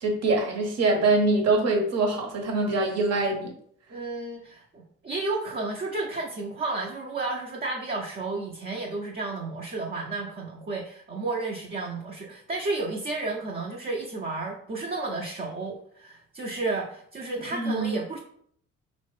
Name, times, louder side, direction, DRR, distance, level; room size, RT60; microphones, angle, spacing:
voice 1, 0.0-3.5 17.6-17.9, right 2 dB, 50° right, 2 dB, 0.9 m, -24 dB
voice 2, 3.9-18.2, right 3 dB, 30° right, -1 dB, 0.5 m, -32 dB
2.9 x 2.1 x 3.1 m, 0.63 s
hypercardioid pair, 55°, 34 cm